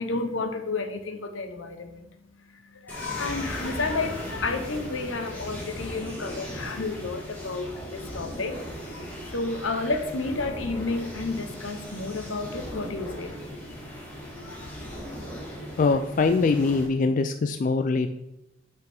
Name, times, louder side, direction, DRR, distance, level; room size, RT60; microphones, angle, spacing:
voice 1, 0.0-8.6 8.9-9.0 9.3-13.4 14.4-14.7, left 3 dB, 80° left, 6 dB, 1.0 m, -31 dB
sound 1, 2.9-16.9, equal, 10° left, 1.9 m, -38 dB
voice 2, 15.8-18.1, left 4 dB, 40° left, 8 dB, 0.3 m, -23 dB
9.1 x 5.6 x 3.6 m, 0.87 s
head